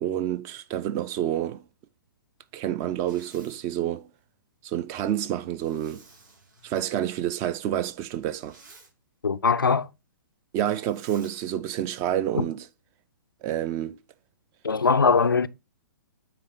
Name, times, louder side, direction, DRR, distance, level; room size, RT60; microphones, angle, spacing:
voice 1, 0.0-1.6 2.5-4.1 4.6-6.0 6.6-8.6 10.5-12.7 13.4-14.0, right 11 dB, 25° right, 0.4 m, -28 dB
Zipper (clothing), 2.9-3.6 5.6-6.9 8.2-8.9 10.6-11.5, right 3 dB, 55° right, 4.0 m, -54 dB
voice 2, 9.2-9.9 12.3-12.4 14.6-15.5, left 5 dB, 85° left, 0.4 m, -21 dB
8.9 x 3.4 x 3.9 m
figure-of-eight pair, 120°, 11 cm